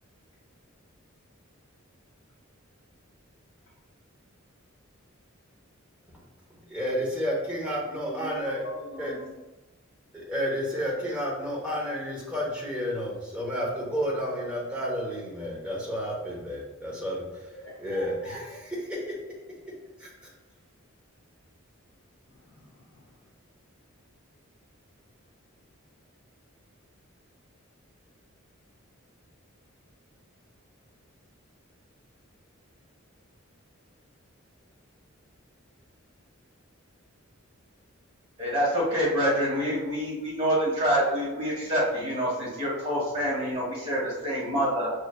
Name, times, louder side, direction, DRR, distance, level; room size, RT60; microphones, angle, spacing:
voice 1, 6.7-8.6 9.0-9.1 10.1-17.2 17.8-18.5 18.9-19.1 20.0-20.1, equal, 5° right, -4 dB, 0.9 m, -31 dB
voice 2, 8.0-9.5 17.5-18.4 22.3-23.1, left 1 dB, 60° left, -5 dB, 0.6 m, -43 dB
voice 3, 38.4-44.9, equal, 30° right, -6 dB, 1.5 m, -26 dB
5.4 x 3.2 x 2.2 m, 1.1 s
head